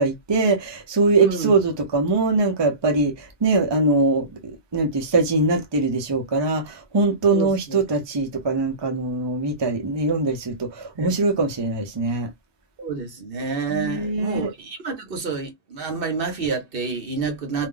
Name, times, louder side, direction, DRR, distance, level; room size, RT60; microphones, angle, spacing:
voice 1, 0.0-12.3 13.7-14.5, right 3 dB, 30° right, 0.7 m, -22 dB
voice 2, 1.2-1.5 7.3-7.8 10.9-11.2 12.8-17.7, right 4 dB, 60° right, 1.0 m, -29 dB
2.5 x 2.2 x 3.7 m
omnidirectional pair, 1.1 m